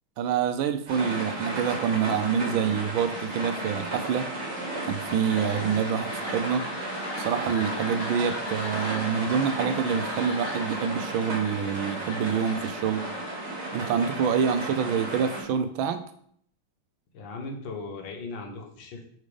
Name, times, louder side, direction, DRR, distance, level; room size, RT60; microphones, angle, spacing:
voice 1, 0.2-4.3 4.9-6.7 7.2-13.0 13.7-16.0, right 7 dB, 80° right, 9 dB, 1.3 m, -26 dB
sound 1, 0.9-15.4, right 2 dB, 35° right, 1.8 m, -34 dB
sound 2, 3.0-14.7, left 2 dB, 55° left, 1.8 m, -40 dB
voice 2, 17.1-19.0, left 3 dB, 70° left, 3 dB, 1.7 m, -38 dB
5.3 x 4.0 x 4.9 m, 0.64 s
omnidirectional pair, 2.2 m